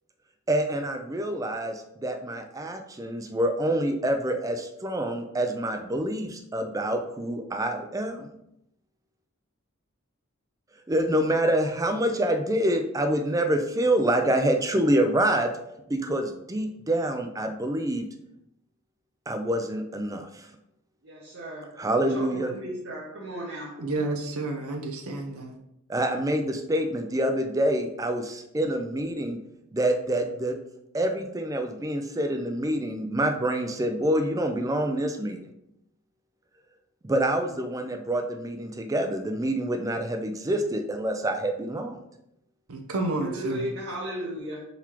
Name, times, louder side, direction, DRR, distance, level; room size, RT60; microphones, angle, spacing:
voice 1, 0.5-8.3 10.9-15.5 15.9-18.1 19.3-20.5 21.8-22.5 25.9-29.4 29.7-30.6 30.9-35.5 37.0-42.0, right 1 dB, 15° right, 6 dB, 0.4 m, -26 dB
voice 2, 21.0-23.9 43.2-44.7, equal, 55° right, -4 dB, 0.8 m, -36 dB
voice 3, 23.8-25.6 42.7-43.7, right 2 dB, 85° right, 3 dB, 0.6 m, -30 dB
4.3 x 4.0 x 3.0 m, 0.82 s
head